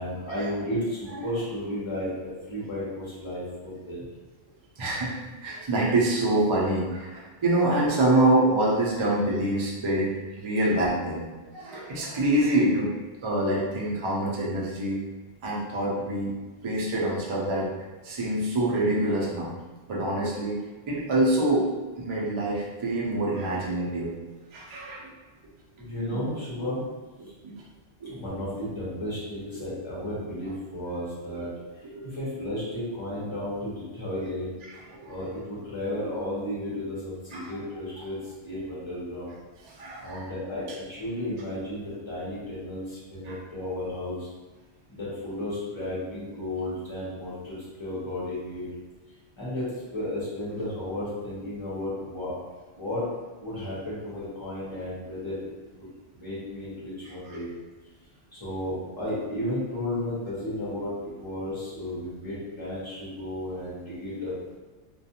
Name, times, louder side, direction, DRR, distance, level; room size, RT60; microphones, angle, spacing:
voice 1, 0.0-4.0 25.8-26.8 28.0-34.5 35.1-39.4 40.0-44.3 44.9-48.7 49.4-52.3 52.7-53.0 53.4-55.9 56.1-57.5 58.3-64.3, left 1 dB, 25° left, -9 dB, 1.0 m, -33 dB
voice 2, 4.8-11.3 11.5-12.9 13.2-15.0 15.4-16.4 16.6-17.7 18.0-19.5 19.9-20.6 20.9-21.7 22.0-24.1 24.5-25.1 26.1-26.2 27.2-27.6 28.0-28.1 31.8-32.0 34.1-34.2 34.9-35.1 37.3-37.5 39.6-40.3 43.2-43.4, right 1 dB, 50° right, -4 dB, 0.3 m, -26 dB
2.4 x 2.3 x 2.7 m, 1.2 s
omnidirectional pair, 1.3 m